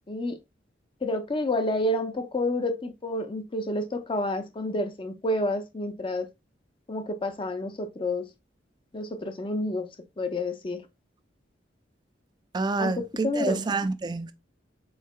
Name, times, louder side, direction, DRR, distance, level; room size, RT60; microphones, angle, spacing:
voice 1, 0.1-0.4 1.0-6.3 6.9-8.3 8.9-9.9 10.2-10.8 12.8-13.6, left 1 dB, 30° left, 0.5 m, -29 dB
voice 2, 12.5-14.3, right 3 dB, 25° right, 0.3 m, -28 dB
4.6 x 3.6 x 2.3 m
head